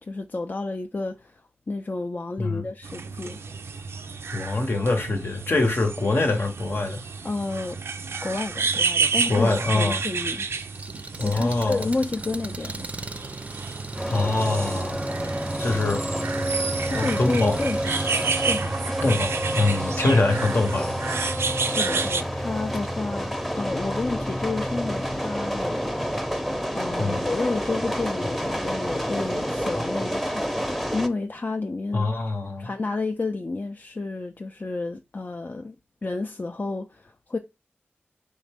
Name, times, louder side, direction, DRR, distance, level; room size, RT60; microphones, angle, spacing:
voice 1, 0.0-3.4 7.2-7.8 8.2-10.5 11.2-12.9 16.9-18.1 18.5-18.9 21.7-26.0 26.7-32.1 32.6-35.8 36.0-37.4, left 3 dB, 45° left, 0.4 m, -30 dB
sound 1, 2.8-22.2, right 5 dB, 90° right, 0.4 m, -31 dB
voice 2, 4.3-7.0 9.3-10.0 11.2-11.9 14.1-15.1 15.6-16.0 16.9-17.6 19.0-20.9 27.0-27.2 31.9-32.7, left 2 dB, 65° left, 0.9 m, -24 dB
Engine, 10.5-18.3, right 2 dB, 30° right, 0.4 m, -39 dB
sound 2, 14.0-31.1, equal, 5° left, 0.7 m, -29 dB
3.9 x 3.2 x 3.4 m
cardioid pair, 40°, 4 cm